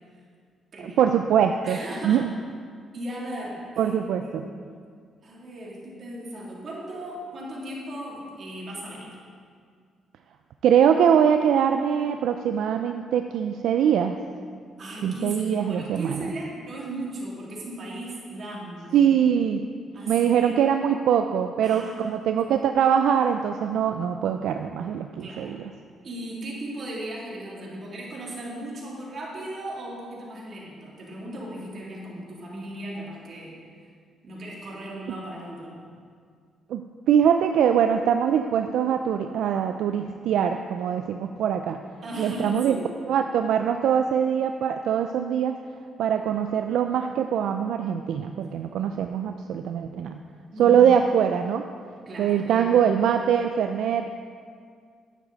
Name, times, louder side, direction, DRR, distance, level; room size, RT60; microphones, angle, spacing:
voice 1, 1.0-1.8 2.0-2.3 3.8-4.5 10.6-14.2 15.0-16.3 18.9-19.6 20.1-25.7 36.7-36.8 37.1-41.8 42.2-42.8 43.1-45.6 46.0-50.2 50.6-51.7 52.2-54.1, right 8 dB, 80° right, 6 dB, 0.4 m, -22 dB
voice 2, 1.6-2.3 2.9-4.0 4.2-4.5 5.2-9.1 14.8-19.1 19.9-20.5 21.6-22.2 25.2-25.5 26.0-33.5 34.2-35.7 42.0-42.8 50.5-50.8 52.0-52.9, right 1 dB, 50° right, -4 dB, 2.9 m, -36 dB
10.5 x 9.2 x 4.1 m, 2.1 s
cardioid pair, 90°, 0 cm